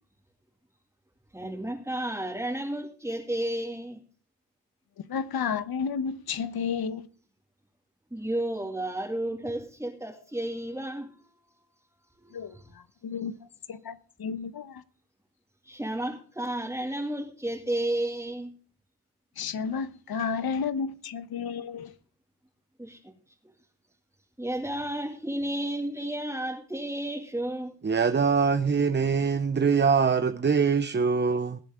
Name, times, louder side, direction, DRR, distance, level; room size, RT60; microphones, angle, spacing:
voice 1, 1.3-4.0 8.1-11.2 12.2-12.7 13.3-13.4 15.6-18.5 22.8-23.1 24.4-27.7, right 1 dB, 5° right, 2.5 m, -32 dB
voice 2, 5.1-7.1 12.3-12.6 13.0-13.3 13.7-14.8 19.4-21.9, left 6 dB, 65° left, 1.1 m, -31 dB
voice 3, 27.8-31.6, right 5 dB, 30° right, 0.7 m, -23 dB
21.0 x 8.4 x 3.7 m
cardioid pair, 60°, 39 cm